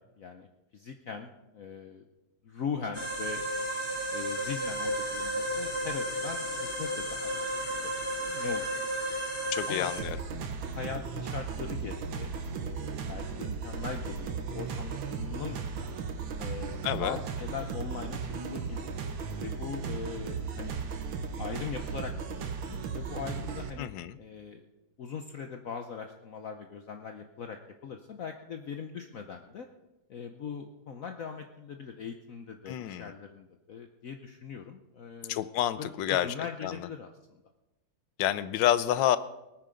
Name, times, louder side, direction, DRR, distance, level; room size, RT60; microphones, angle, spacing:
voice 1, 0.2-0.5 0.7-2.1 2.4-3.5 4.1-8.7 9.7-9.9 10.7-12.3 12.6-15.9 16.4-18.2 18.4-18.9 19.4-20.8 21.4-23.9 24.2-24.6 25.0-29.7 30.1-35.5 35.8-37.4, left 6 dB, 55° left, 5 dB, 1.0 m, -40 dB
sound 1, 2.9-10.0, right 1 dB, 35° left, 3.5 m, -33 dB
voice 2, 9.5-10.2 16.8-17.2 23.8-24.2 32.7-33.1 35.3-36.3 36.6-36.9 38.2-39.2, left 11 dB, 75° left, 15 dB, 1.3 m, -28 dB
sound 2, 10.0-23.7, right 5 dB, 80° right, 1.9 m, -36 dB
19.0 x 9.7 x 5.1 m, 1.0 s
omnidirectional pair, 2.1 m